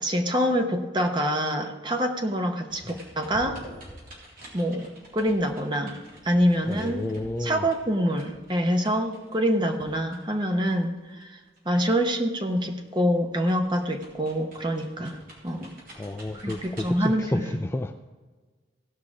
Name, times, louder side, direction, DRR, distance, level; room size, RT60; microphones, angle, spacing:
voice 1, 0.0-3.6 4.5-6.0 6.2-7.1 7.4-11.4 11.6-15.8 16.4-17.5, equal, 25° right, 4 dB, 1.0 m, -26 dB
sound 1, 2.7-12.2 12.5-17.1, right 1 dB, 50° right, 3.4 m, -48 dB
voice 2, 6.7-7.7 15.9-18.0, left 1 dB, 15° left, 6 dB, 0.3 m, -31 dB
16.5 x 5.7 x 4.9 m, 1.4 s
head